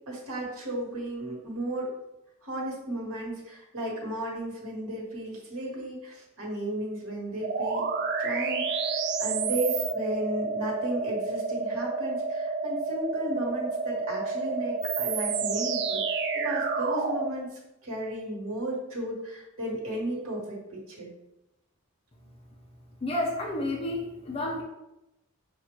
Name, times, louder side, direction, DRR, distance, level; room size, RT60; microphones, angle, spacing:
voice 1, 0.1-1.9 2.4-7.8 8.2-17.5 17.8-21.1, right 1 dB, 70° right, -2 dB, 1.4 m, -34 dB
sound 1, 7.4-17.3, right 4 dB, 50° right, 0.4 m, -29 dB
voice 2, 23.0-24.6, left 1 dB, 25° left, -1 dB, 0.6 m, -30 dB
6.0 x 2.5 x 3.1 m, 0.90 s
head